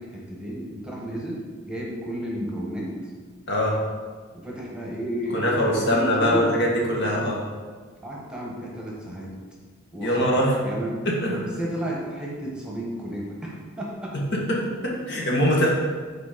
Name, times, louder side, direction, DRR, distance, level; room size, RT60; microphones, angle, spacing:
voice 1, 0.0-3.1 4.3-6.5 6.9-7.3 8.0-9.3 9.9-11.0 11.3-14.2, right 1 dB, 5° right, -4 dB, 1.3 m, -32 dB
voice 2, 5.3-7.4 10.0-10.5 11.0-11.3 14.1-15.7, equal, 60° left, -3 dB, 1.6 m, -23 dB
8.3 x 4.3 x 5.1 m, 1.5 s
head